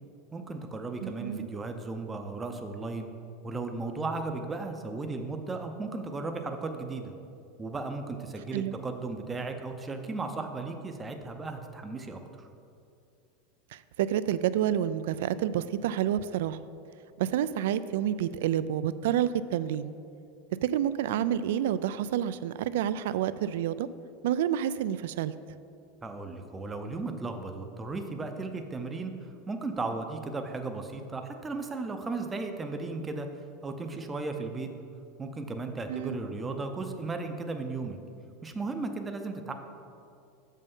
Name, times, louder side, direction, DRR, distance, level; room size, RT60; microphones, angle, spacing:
voice 1, 0.3-3.1 3.4-7.1 7.6-12.5 26.0-29.1 29.5-33.3 33.6-34.7 35.2-38.0 38.4-39.5, right 3 dB, 15° right, 5 dB, 0.5 m, -35 dB
voice 2, 1.0-1.5 8.5-8.8 13.7-16.6 17.2-19.9 20.6-23.9 24.2-25.3 35.9-36.2, right 10 dB, 75° right, 15 dB, 0.3 m, -29 dB
7.3 x 5.5 x 5.4 m, 2.5 s
supercardioid pair, 160°, 0 cm